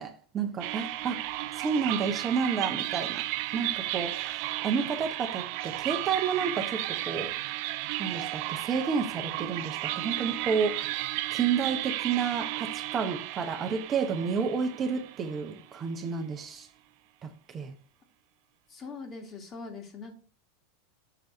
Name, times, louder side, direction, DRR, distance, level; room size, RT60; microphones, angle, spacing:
voice 1, 0.0-3.3 3.5-7.3 8.0-16.7 17.2-17.8, right 6 dB, 30° right, 0.8 m, -31 dB
sound 1, 0.6-15.9, right 16 dB, 55° right, 0.3 m, -34 dB
voice 2, 18.7-20.1, left 4 dB, 30° left, 1.5 m, -42 dB
6.7 x 3.4 x 4.1 m
hypercardioid pair, 95°, 0 cm